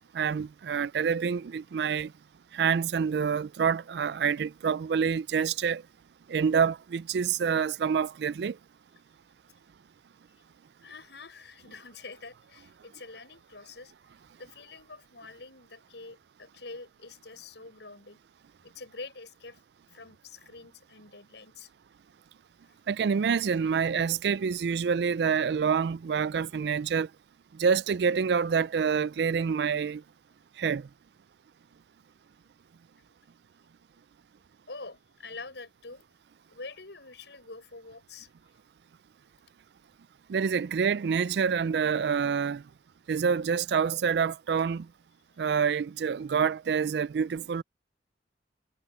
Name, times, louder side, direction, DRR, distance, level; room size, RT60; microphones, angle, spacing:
voice 1, 0.1-2.1 2.5-5.8 6.3-8.6 22.9-27.1 27.6-30.0 30.6-30.9 40.3-42.6 43.1-44.9 45.4-47.6, right 6 dB, 70° right, 0.4 m, -27 dB
voice 2, 10.8-13.9 14.4-18.2 18.6-19.6 19.9-21.7 22.6-22.8 33.0-33.1 34.7-36.0 36.5-38.3 45.4-45.6, left 3 dB, 80° left, 5.9 m, -46 dB
head